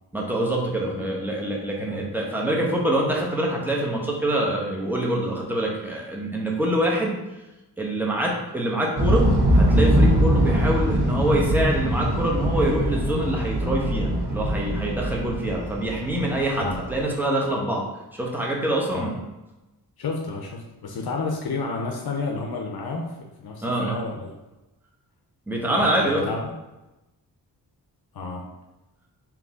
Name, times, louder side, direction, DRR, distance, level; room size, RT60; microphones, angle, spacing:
voice 1, 0.1-7.1 7.8-17.8 18.1-19.1 23.6-24.0 25.5-26.3, right 1 dB, 5° right, -2 dB, 1.1 m, -25 dB
sound 1, 9.0-17.0, equal, 65° right, 1.2 m, -22 dB
voice 2, 20.0-24.3 25.6-26.5 28.1-28.4, left 3 dB, 60° left, 1 dB, 0.7 m, -31 dB
3.8 x 3.0 x 3.6 m, 1.0 s
cardioid pair, 50°, 42 cm